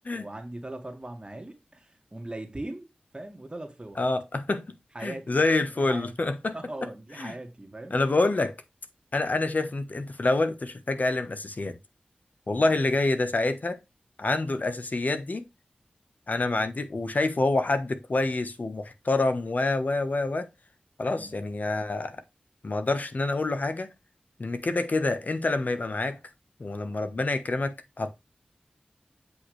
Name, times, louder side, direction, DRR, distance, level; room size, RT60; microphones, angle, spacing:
voice 1, 0.1-4.0 4.9-5.4 5.8-6.1 6.5-7.9 12.6-12.7 21.2-21.3, right 1 dB, 30° right, 1.9 m, -40 dB
voice 2, 4.0-6.6 7.2-7.3 7.9-8.6 9.1-11.8 12.5-13.8 14.2-15.5 16.3-20.5 21.0-22.2 22.6-23.9 24.4-26.2 26.6-28.1, left 2 dB, 65° left, 1.2 m, -27 dB
8.2 x 5.4 x 3.3 m
wide cardioid pair, 50°, 3 cm